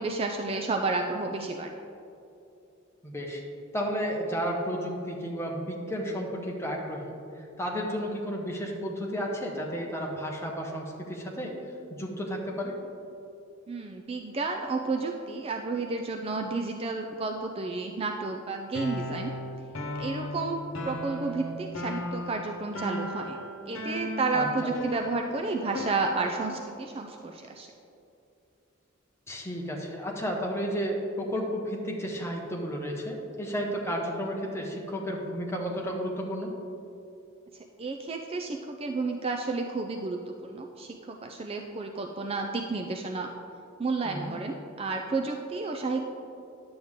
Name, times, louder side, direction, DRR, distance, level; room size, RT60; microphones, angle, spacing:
voice 1, 0.0-1.8 13.7-19.3 20.0-23.4 23.7-27.7 37.8-43.3 43.8-46.0, right 3 dB, 30° right, 3 dB, 0.4 m, -31 dB
voice 2, 3.0-3.4 3.7-11.5 11.9-12.8 24.3-24.7 29.3-36.5 44.0-44.3, equal, 15° left, -1 dB, 1.1 m, -32 dB
sound 1, 18.7-26.6, left 1 dB, 85° left, 1.0 m, -36 dB
10.0 x 7.8 x 3.7 m, 2.8 s
head